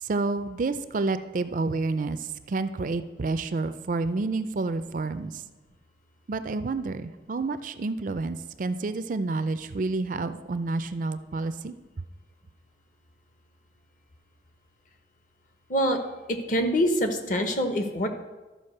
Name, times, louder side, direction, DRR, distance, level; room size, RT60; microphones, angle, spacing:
voice 1, 0.0-5.4 6.3-11.7, right 3 dB, 45° right, 12 dB, 0.4 m, -29 dB
voice 2, 16.5-18.1, equal, 45° left, 6 dB, 1.0 m, -24 dB
12.5 x 5.0 x 6.5 m, 1.2 s
head